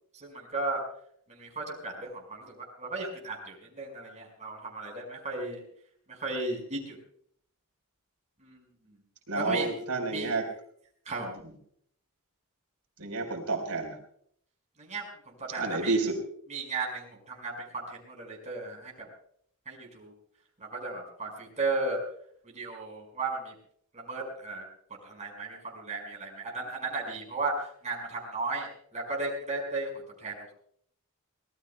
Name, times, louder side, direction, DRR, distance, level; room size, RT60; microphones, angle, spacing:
voice 1, 0.1-0.8 1.3-5.6 6.1-7.0 8.4-8.6 9.3-9.7 10.1-10.3 11.0-11.3 14.8-15.0 15.5-15.9 16.5-19.1 19.6-20.1 20.6-22.0 22.4-23.5 23.9-24.6 25.0-27.5 27.8-29.9 30.2-30.5, right 3 dB, 30° right, -1 dB, 4.9 m, -35 dB
voice 2, 9.3-10.5 13.0-14.0 15.6-16.2, right 3 dB, 75° right, 3 dB, 4.1 m, -30 dB
25.0 x 19.0 x 2.2 m, 0.64 s
head